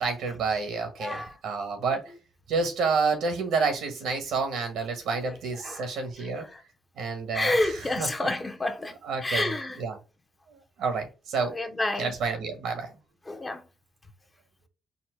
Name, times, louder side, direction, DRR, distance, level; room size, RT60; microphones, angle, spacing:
voice 1, 0.0-2.1 2.5-6.5 7.0-8.1 9.0-10.0 10.5-11.6 12.0-12.9, right 4 dB, 85° right, 1.3 m, -29 dB
voice 2, 7.3-8.9 9.2-9.8 11.5-12.1 13.3-13.6, left 2 dB, 20° left, 0.7 m, -28 dB
4.2 x 2.1 x 4.5 m
cardioid pair, 80°, 0 cm